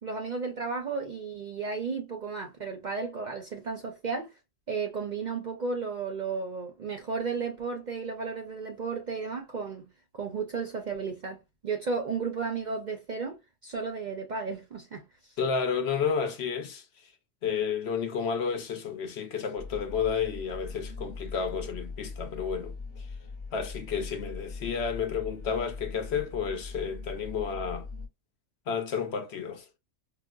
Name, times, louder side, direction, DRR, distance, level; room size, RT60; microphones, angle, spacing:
voice 1, 0.0-4.3 4.7-9.9 10.1-15.3, right 4 dB, 50° right, 0.6 m, -34 dB
voice 2, 15.4-16.8 17.4-23.1 23.5-27.9 28.7-29.6, left 6 dB, 65° left, 0.8 m, -31 dB
sound 1, 19.6-28.1, left 4 dB, 40° left, 1.0 m, -41 dB
4.7 x 2.0 x 2.3 m
omnidirectional pair, 1.3 m